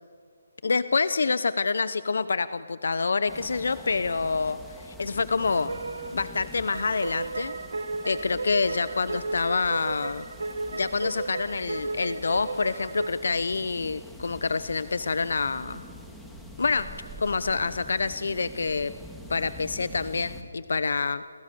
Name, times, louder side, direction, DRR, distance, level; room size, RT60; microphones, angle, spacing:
voice 1, 0.6-5.7 6.1-7.5 8.0-10.2 10.7-15.8 16.6-16.9 17.2-18.9 19.3-21.2, left 4 dB, 70° left, 14 dB, 0.8 m, -27 dB
sound 1, 3.3-20.4, equal, ahead, 1.9 m, -45 dB
sound 2, 5.4-13.1, right 3 dB, 90° right, 1.5 m, -34 dB
29.5 x 25.5 x 6.9 m, 2.1 s
hypercardioid pair, 170°, 0 cm